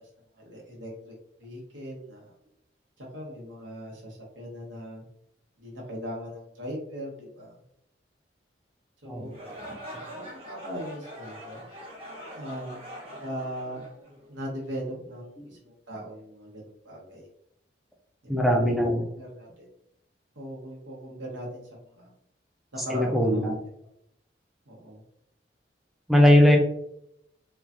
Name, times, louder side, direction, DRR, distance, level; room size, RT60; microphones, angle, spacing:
voice 1, 0.4-1.1 1.4-2.3 3.0-5.0 5.6-7.5 9.0-9.4 10.2-11.7 12.3-12.8 13.1-13.9 14.3-17.3 18.2-19.7 20.4-22.1 22.7-23.5 24.7-25.0, equal, 85° right, -2 dB, 0.9 m, -39 dB
sound 1, 9.2-14.5, equal, 30° right, 0.9 m, -43 dB
voice 2, 9.7-10.0 15.4-15.5 18.3-19.0 22.9-23.6 26.1-26.6, equal, ahead, 1 dB, 0.3 m, -20 dB
3.0 x 2.3 x 2.4 m, 0.76 s
head